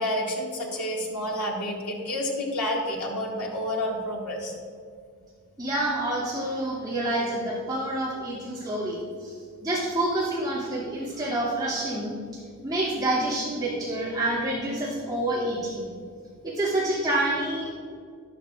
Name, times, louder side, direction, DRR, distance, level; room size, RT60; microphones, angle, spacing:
voice 1, 0.0-4.5, left 1 dB, 90° left, -3 dB, 2.2 m, -29 dB
voice 2, 5.6-9.3 9.6-12.1 12.6-15.9 16.4-17.7, right 1 dB, 15° right, -9 dB, 2.7 m, -28 dB
13.0 x 11.5 x 2.5 m, 2.1 s
head